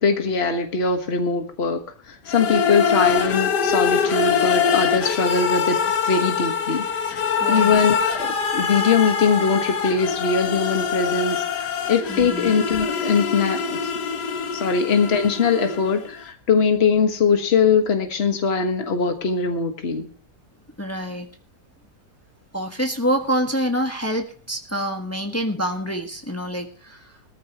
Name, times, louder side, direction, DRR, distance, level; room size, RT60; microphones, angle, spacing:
voice 1, 0.0-1.8 2.1-5.8 6.1-6.8 7.5-13.8 14.6-20.1, left 5 dB, 40° left, 5 dB, 1.7 m, -21 dB
sound 1, 2.3-16.1, left 6 dB, 85° left, 1.7 m, -24 dB
voice 2, 7.4-7.8 12.1-12.5 20.8-21.3 22.5-27.1, equal, 10° left, 3 dB, 1.2 m, -26 dB
19.5 x 14.0 x 3.0 m, 0.41 s
omnidirectional pair, 1.8 m